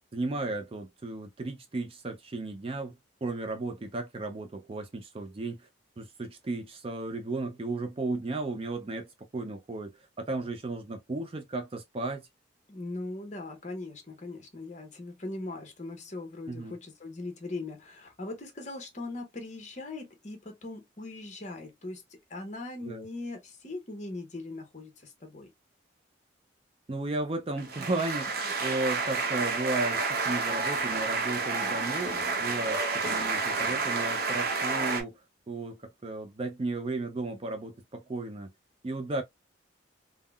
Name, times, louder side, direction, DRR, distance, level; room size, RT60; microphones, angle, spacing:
voice 1, 0.1-5.6 6.0-12.3 16.5-16.8 22.9-23.0 26.9-35.2 35.5-38.5 38.8-39.2, right 2 dB, 30° right, 0.4 m, -34 dB
voice 2, 12.7-25.5, left 2 dB, 35° left, 0.9 m, -40 dB
sound 1, 27.6-35.0, right 4 dB, 50° right, 0.7 m, -30 dB
3.6 x 2.0 x 2.2 m
head